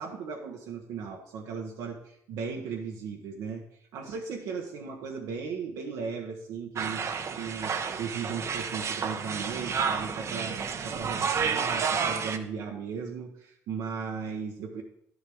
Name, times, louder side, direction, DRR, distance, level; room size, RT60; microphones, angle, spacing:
voice 1, 0.0-3.6 3.9-7.1 7.4-10.6 10.8-14.8, right 5 dB, 80° right, 0 dB, 1.0 m, -36 dB
sound 1, 6.8-12.4, right 6 dB, 50° right, 0.8 m, -30 dB
10.5 x 7.3 x 3.6 m, 0.71 s
supercardioid pair, 75°, 6 cm